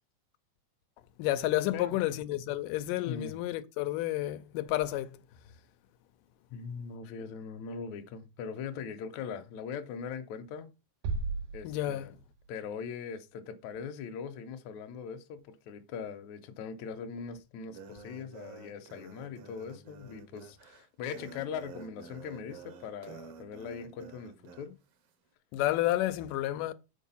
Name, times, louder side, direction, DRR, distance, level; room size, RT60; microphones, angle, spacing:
voice 1, 1.2-5.2 11.6-12.1 25.5-26.7, left 15 dB, 90° left, 2.3 m, -30 dB
voice 2, 1.7-2.1 2.3-2.4 3.1-3.4 6.5-10.7 11.5-12.2 12.5-24.8, left 6 dB, 75° left, 1.9 m, -41 dB
sound 1, 11.0-13.0, right 4 dB, 80° right, 2.5 m, -37 dB
sound 2, 17.7-24.7, right 4 dB, 65° right, 1.6 m, -50 dB
6.8 x 4.7 x 5.5 m
omnidirectional pair, 3.7 m